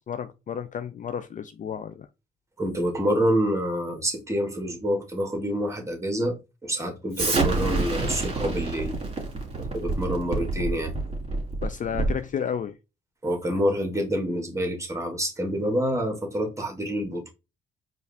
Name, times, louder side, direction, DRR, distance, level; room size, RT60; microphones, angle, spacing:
voice 1, 0.1-2.1 11.6-12.8, left 7 dB, 40° left, 0.4 m, -32 dB
voice 2, 2.6-6.4 6.6-8.9 9.6-10.9 13.2-17.3, equal, 15° right, 1.6 m, -27 dB
Explosion, 7.1-12.3, right 3 dB, 30° right, 2.1 m, -27 dB
4.6 x 2.6 x 3.3 m
cardioid pair, 90°, 20 cm